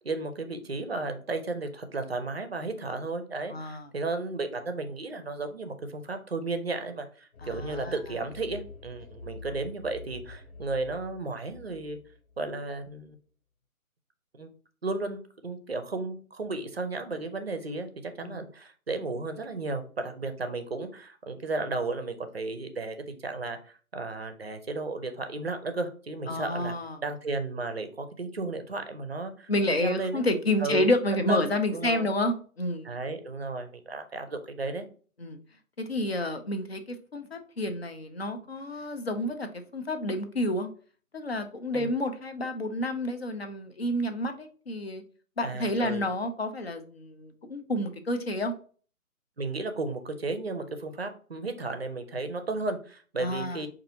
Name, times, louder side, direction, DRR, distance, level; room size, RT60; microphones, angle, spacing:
voice 1, 0.0-12.0 12.4-13.2 14.3-14.5 14.8-26.7 27.0-30.2 30.6-32.1 32.8-34.9 41.7-41.9 45.4-46.1 49.4-53.7, right 3 dB, 45° right, 8 dB, 0.5 m, -34 dB
voice 2, 3.5-3.9 7.4-8.0 18.2-18.4 26.3-27.0 29.5-32.9 35.2-35.4 35.8-40.7 41.1-45.0 45.4-48.5 53.2-53.6, left 1 dB, 45° left, 7 dB, 0.5 m, -29 dB
sound 1, 7.3-12.9, left 3 dB, 70° left, 0.8 m, -46 dB
5.3 x 2.5 x 2.7 m, 0.41 s
hypercardioid pair, 170°, 44 cm